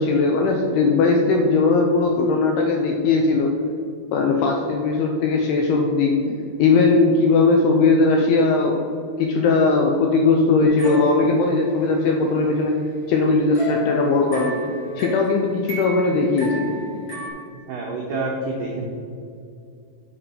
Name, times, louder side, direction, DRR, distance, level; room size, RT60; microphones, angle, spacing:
voice 1, 0.0-3.5 4.1-8.8 9.2-12.7 13.1-14.7 15.0-16.7, left 3 dB, 85° left, 2 dB, 2.3 m, -19 dB
sound 1, 10.6-12.1 13.5-17.3, left 1 dB, 60° left, 1.2 m, -33 dB
voice 2, 17.7-18.9, right 2 dB, 90° right, -3 dB, 1.8 m, -27 dB
6.9 x 5.2 x 5.5 m, 2.5 s
omnidirectional pair, 5.1 m